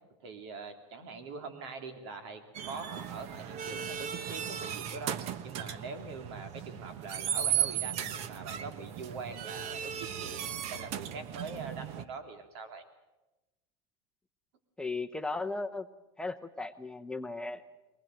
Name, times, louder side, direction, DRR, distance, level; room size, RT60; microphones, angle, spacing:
voice 1, 0.2-2.4 2.7-5.1 5.4-12.8, right 4 dB, 75° right, 7 dB, 3.1 m, -43 dB
sound 1, 2.5-12.0, right 9 dB, 50° right, 1.1 m, -36 dB
voice 2, 14.8-15.9 16.2-17.6, left 3 dB, 5° left, 7 dB, 0.7 m, -36 dB
22.0 x 19.5 x 7.8 m, 1.0 s
supercardioid pair, 140°, 14 cm